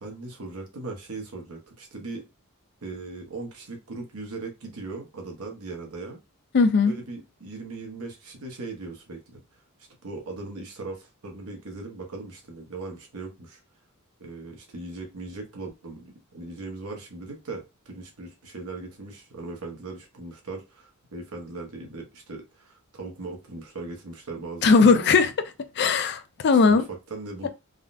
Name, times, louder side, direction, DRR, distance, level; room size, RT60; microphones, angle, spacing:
voice 1, 0.0-2.3 2.8-6.2 6.8-9.4 10.0-13.6 14.2-25.1 26.6-27.5, right 3 dB, 70° right, 0.9 m, -39 dB
voice 2, 6.5-6.9 24.6-25.3 25.8-26.8, left 4 dB, 50° left, 0.4 m, -18 dB
3.5 x 2.1 x 2.5 m
head